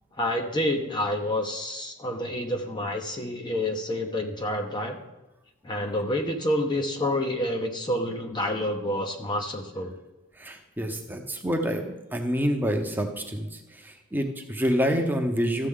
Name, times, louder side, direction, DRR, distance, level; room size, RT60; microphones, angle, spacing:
voice 1, 0.2-5.0 5.6-10.0, left 1 dB, 20° left, 4 dB, 0.8 m, -28 dB
voice 2, 10.4-13.5 13.8-15.7, equal, 10° right, 3 dB, 0.9 m, -27 dB
13.5 x 7.4 x 3.7 m, 1.1 s
head